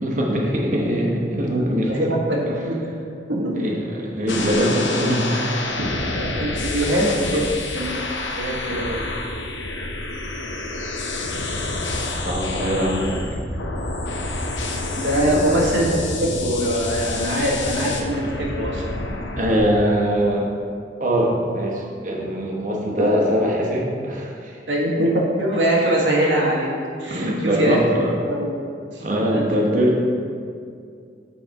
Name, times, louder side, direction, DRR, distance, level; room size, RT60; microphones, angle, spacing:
voice 1, 0.0-2.1 3.5-6.0 12.1-13.2 15.2-15.5 19.4-20.5 21.0-24.6 27.1-28.2 29.0-30.1, equal, 45° right, -2 dB, 1.0 m, -22 dB
voice 2, 1.6-2.9 3.3-3.6 6.1-7.5 7.7-8.0 8.4-9.1 15.0-18.9 22.9-23.1 24.7-26.7 27.0-27.8 28.3-28.6 28.9-30.0, right 1 dB, 90° right, -2 dB, 1.4 m, -23 dB
sound 1, 4.3-19.6, left 2 dB, 85° left, 0.7 m, -28 dB
7.8 x 4.2 x 4.6 m, 2.3 s
head